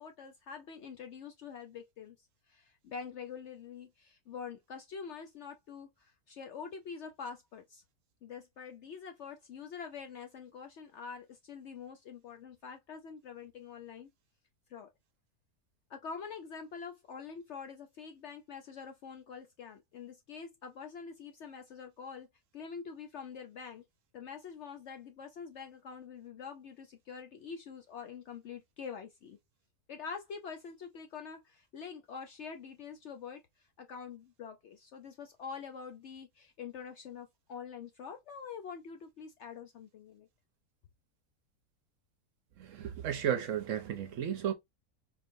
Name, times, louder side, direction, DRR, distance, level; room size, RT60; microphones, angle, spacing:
voice 1, 0.0-7.8 8.2-14.1 14.7-14.9 15.9-22.3 22.5-23.8 24.1-29.4 29.9-40.3, left 6 dB, 70° left, 0.7 m, -45 dB
voice 2, 42.6-44.5, right 9 dB, 65° right, 0.9 m, -33 dB
3.9 x 3.2 x 2.5 m
omnidirectional pair, 1.6 m